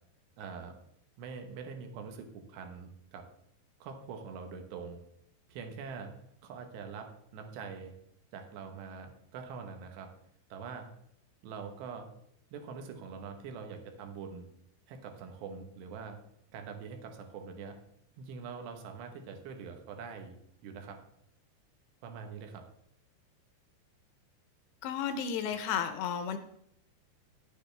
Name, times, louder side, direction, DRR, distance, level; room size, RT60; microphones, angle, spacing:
voice 1, 0.4-0.8 1.2-3.3 3.8-5.0 5.5-6.1 6.4-7.9 8.3-10.1 10.5-10.9 11.4-12.1 12.5-14.4 14.9-16.2 16.5-17.8 18.2-20.3 20.6-21.0 22.0-22.7 25.4-25.5, right 5 dB, 80° right, 4 dB, 3.2 m, -44 dB
voice 2, 24.8-26.4, left 8 dB, 80° left, 8 dB, 2.6 m, -33 dB
10.0 x 9.5 x 3.3 m, 0.76 s
omnidirectional pair, 5.1 m